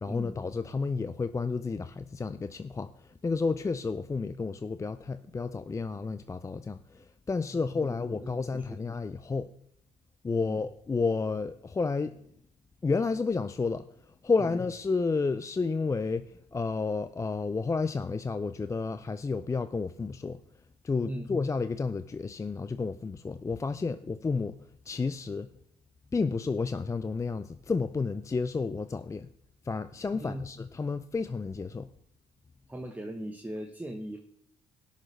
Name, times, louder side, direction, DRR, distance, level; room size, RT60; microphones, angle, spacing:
voice 1, 0.0-9.5 10.2-12.2 12.8-13.8 14.2-20.4 20.8-24.6 24.9-25.5 26.1-29.3 29.6-31.9, left 4 dB, 20° left, 11 dB, 0.4 m, -31 dB
voice 2, 7.5-8.7 10.4-10.6 14.4-14.6 21.0-21.3 30.1-30.5 32.7-34.2, equal, 10° right, 4 dB, 1.0 m, -40 dB
17.5 x 6.5 x 3.2 m, 0.71 s
supercardioid pair, 70°, 15 cm